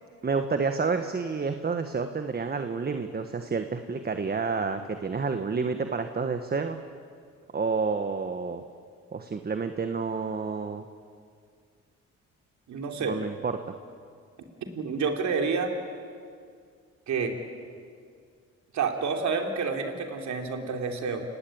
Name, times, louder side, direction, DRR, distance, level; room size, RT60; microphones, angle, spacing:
voice 1, 0.2-6.8 7.5-8.6 9.1-10.8 13.0-13.6, right 4 dB, 30° right, 7 dB, 1.5 m, -29 dB
voice 2, 12.7-13.2 14.7-15.7 17.1-17.3 18.7-21.2, right 5 dB, 70° right, 4 dB, 3.5 m, -29 dB
30.0 x 18.5 x 8.8 m, 2.2 s
cardioid pair, 90°, 30 cm